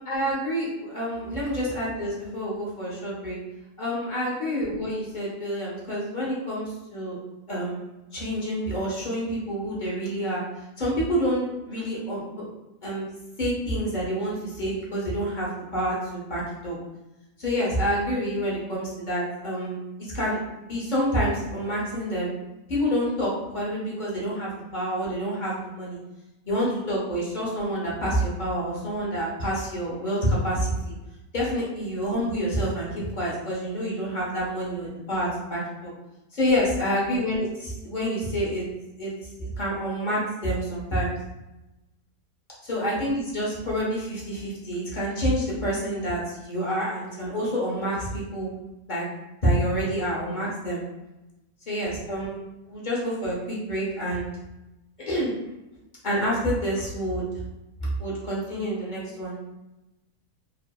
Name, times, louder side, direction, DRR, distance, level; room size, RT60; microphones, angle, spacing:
voice 1, 0.1-3.4 3.8-7.2 7.5-12.4 12.8-13.1 13.4-16.8 17.4-22.3 22.7-26.0 26.5-30.9 31.3-35.9 36.3-38.7 39.0-39.1 39.4-41.1 42.6-48.5 48.9-49.0 49.4-50.8 51.7-54.3 55.0-55.3 56.0-57.2 58.0-59.3, equal, 40° left, -6 dB, 0.7 m, -28 dB
2.7 x 2.5 x 2.2 m, 0.99 s
omnidirectional pair, 1.6 m